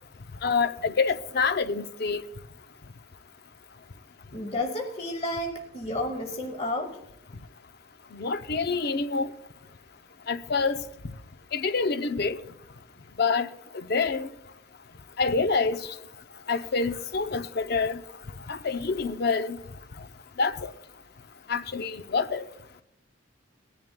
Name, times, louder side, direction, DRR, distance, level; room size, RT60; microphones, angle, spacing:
voice 1, 0.4-2.2 8.1-9.3 10.3-10.8 11.5-12.4 13.2-13.5 13.7-14.3 15.2-15.9 16.5-18.0 18.5-19.6 20.4-20.7 21.5-22.5, left 4 dB, 50° left, 0.6 m, -27 dB
voice 2, 4.3-7.0, left 1 dB, 30° left, 1.0 m, -31 dB
18.5 x 10.5 x 2.2 m
head